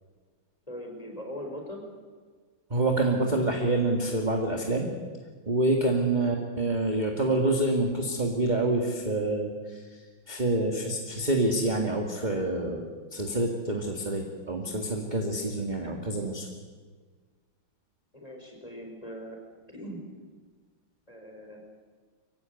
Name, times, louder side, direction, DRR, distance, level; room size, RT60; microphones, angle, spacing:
voice 1, 0.7-1.8 15.7-15.9 18.1-19.4 19.7-20.0 21.1-21.6, equal, 15° left, 1 dB, 4.7 m, -41 dB
voice 2, 2.7-4.9 5.5-16.5, right 2 dB, 20° right, 2 dB, 2.0 m, -27 dB
24.5 x 15.5 x 9.3 m, 1.5 s
omnidirectional pair, 2.4 m